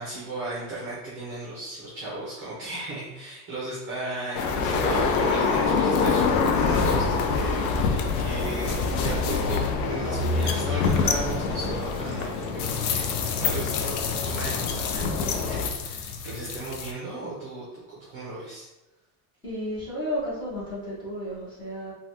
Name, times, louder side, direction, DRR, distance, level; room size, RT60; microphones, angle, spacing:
voice 1, 0.0-18.7, right 2 dB, 30° right, -7 dB, 0.6 m, -35 dB
sound 1, 4.3-16.9, left 5 dB, 90° left, 0.5 m, -25 dB
voice 2, 19.4-21.9, equal, 10° left, -10 dB, 0.8 m, -32 dB
3.1 x 2.3 x 2.7 m, 1.0 s
cardioid pair, 170°, 42 cm